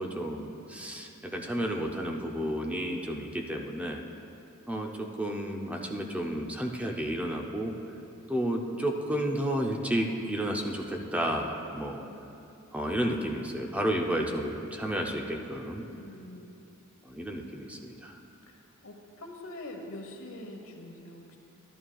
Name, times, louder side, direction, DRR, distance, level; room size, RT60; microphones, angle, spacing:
voice 1, 0.0-4.0 4.7-7.7 8.3-12.1 12.7-15.8 17.0-18.2, right 1 dB, 5° right, 1 dB, 0.5 m, -32 dB
voice 2, 15.9-16.5 18.5-21.4, left 1 dB, 75° left, 2 dB, 1.0 m, -44 dB
12.5 x 11.5 x 2.3 m, 2.8 s
head